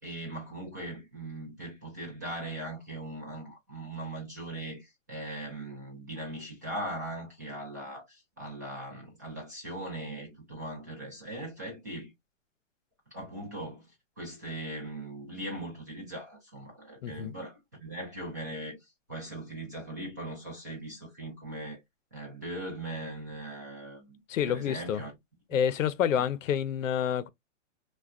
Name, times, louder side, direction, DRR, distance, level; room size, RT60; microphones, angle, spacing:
voice 1, 0.0-12.1 13.1-13.9 14.2-21.8 22.1-25.1, right 1 dB, 15° right, 0.3 m, -40 dB
voice 2, 17.0-17.3 24.3-25.0 25.5-27.3, left 9 dB, 85° left, 0.5 m, -28 dB
3.3 x 2.2 x 2.3 m
hypercardioid pair, 155°, 38 cm